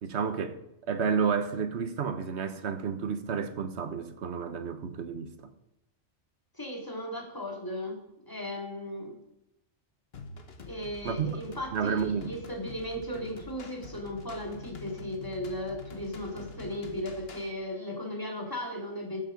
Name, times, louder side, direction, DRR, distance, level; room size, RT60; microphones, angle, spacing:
voice 1, 0.0-0.6 0.9-5.5 11.0-11.4 11.7-12.3, right 6 dB, 55° right, 1.2 m, -31 dB
voice 2, 6.5-8.0 8.3-9.2 10.6-19.2, left 1 dB, 15° left, 2.5 m, -36 dB
sound 1, 10.1-17.5, left 5 dB, 50° left, 1.3 m, -46 dB
13.5 x 7.5 x 5.2 m
omnidirectional pair, 1.4 m